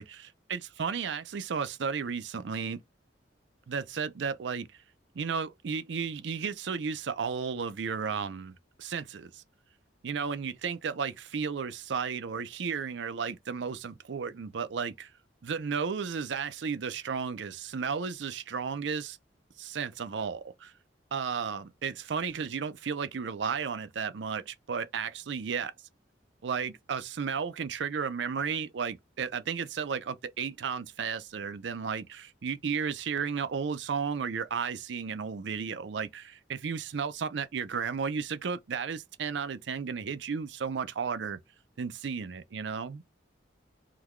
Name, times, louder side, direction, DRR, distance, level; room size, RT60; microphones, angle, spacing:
voice 1, 0.0-2.8 3.7-4.7 5.1-9.4 10.0-15.1 15.4-19.2 19.6-20.7 21.1-25.7 26.4-41.4 41.8-43.0, right 6 dB, 70° right, 0.5 m, -33 dB
3.8 x 2.3 x 3.0 m
head